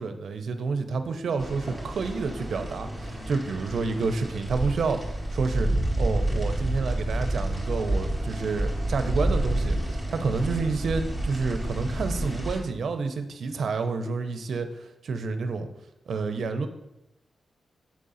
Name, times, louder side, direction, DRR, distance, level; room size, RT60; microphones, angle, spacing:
voice 1, 0.0-5.0 5.3-5.7 6.0-15.7 16.1-16.7, right 4 dB, 70° right, 8 dB, 0.7 m, -29 dB
sound 1, 1.4-12.6, right 1 dB, 10° left, 2.0 m, -29 dB
7.5 x 3.7 x 5.6 m, 0.91 s
wide cardioid pair, 100°, 0 cm